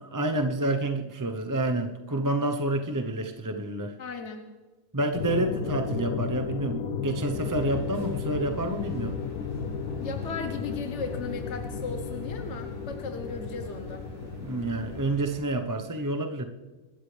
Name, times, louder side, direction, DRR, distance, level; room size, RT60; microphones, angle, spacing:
voice 1, 0.0-4.0 4.9-9.2 14.4-16.4, right 2 dB, 20° right, 5 dB, 0.7 m, -29 dB
voice 2, 4.0-4.5 10.0-14.0, left 4 dB, 55° left, 5 dB, 1.3 m, -36 dB
sound 1, 5.1-15.1, left 7 dB, 90° left, 1.2 m, -34 dB
sound 2, 7.3-15.4, right 1 dB, 35° right, 5.9 m, -44 dB
26.0 x 13.0 x 3.4 m, 1.3 s
omnidirectional pair, 1.5 m